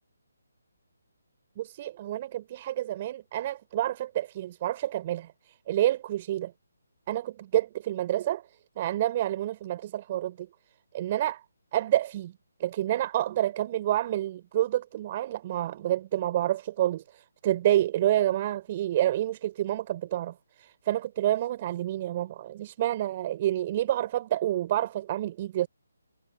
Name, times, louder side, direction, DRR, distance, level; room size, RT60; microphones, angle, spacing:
voice 1, 1.6-6.5 7.1-8.4 8.8-10.5 10.9-11.4 11.7-12.3 12.6-25.7, right 13 dB, 30° right, 6.6 m, -28 dB
figure-of-eight pair, 145°, 0 cm